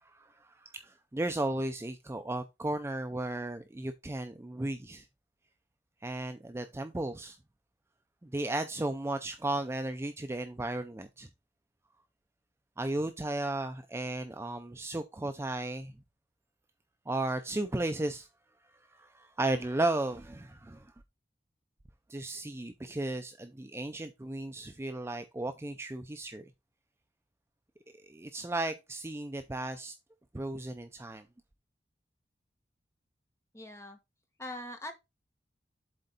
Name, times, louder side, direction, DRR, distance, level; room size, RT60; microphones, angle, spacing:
voice 1, 0.0-5.0 6.0-7.4 8.2-11.3 12.8-15.9 17.1-18.3 18.9-20.9 22.1-26.5 28.0-29.9 30.3-31.2, right 2 dB, 15° right, 0.4 m, -35 dB
voice 2, 33.5-34.0 34.4-34.9, left 1 dB, 15° left, 1.2 m, -41 dB
7.7 x 3.9 x 4.0 m
head